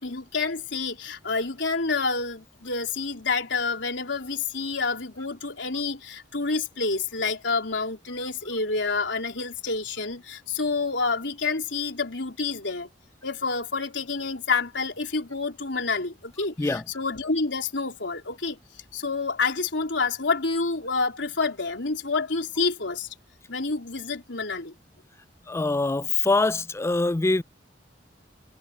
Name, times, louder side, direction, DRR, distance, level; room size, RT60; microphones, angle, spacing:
voice 1, 0.0-12.9 13.2-18.6 18.9-23.1 23.5-24.7, left 4 dB, 85° left, 3.7 m, -28 dB
voice 2, 25.5-27.4, left 3 dB, 15° left, 0.3 m, -24 dB
head